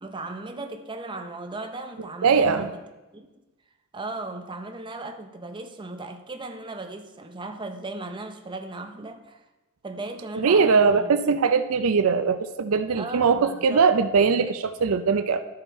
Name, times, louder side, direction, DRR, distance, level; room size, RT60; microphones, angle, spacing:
voice 1, 0.0-2.8 3.1-3.4 3.9-9.4 9.8-11.3 13.0-13.8, right 2 dB, 20° right, 5 dB, 0.6 m, -37 dB
voice 2, 2.2-2.7 10.3-15.4, right 5 dB, 70° right, 10 dB, 0.5 m, -21 dB
12.5 x 5.8 x 4.2 m, 1.1 s
head